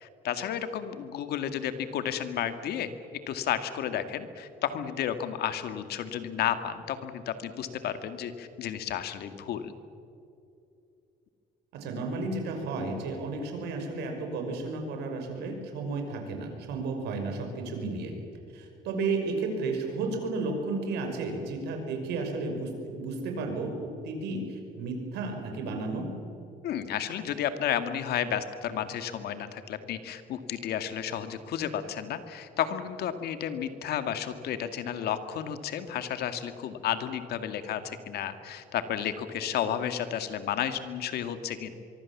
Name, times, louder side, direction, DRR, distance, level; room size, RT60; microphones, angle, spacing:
voice 1, 0.0-2.9 3.3-9.7 26.6-41.7, left 9 dB, 70° left, 9 dB, 1.9 m, -32 dB
voice 2, 11.7-18.1 18.5-23.7 24.0-26.1, right 3 dB, 80° right, 3 dB, 5.6 m, -33 dB
24.0 x 23.5 x 7.3 m, 2.6 s
cardioid pair, 110°, 17 cm